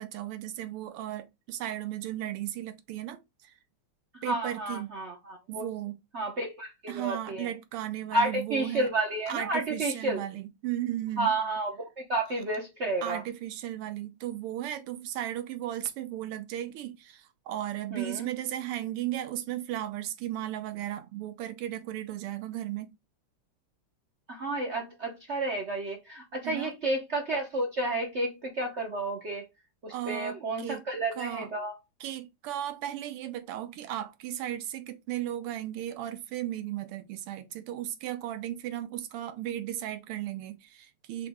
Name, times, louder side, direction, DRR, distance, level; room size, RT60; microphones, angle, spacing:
voice 1, 0.0-3.5 4.2-4.9 5.5-6.0 6.9-8.9 9.3-11.4 13.0-23.0 26.4-26.7 29.9-30.8 31.1-31.5 32.0-41.3, right 12 dB, 90° right, 1.7 m, -35 dB
voice 2, 4.2-5.6 6.1-7.5 8.1-10.2 11.2-13.2 17.9-18.3 24.3-29.4 29.8-31.7, right 2 dB, 55° right, 0.7 m, -31 dB
5.1 x 3.0 x 3.5 m
omnidirectional pair, 2.4 m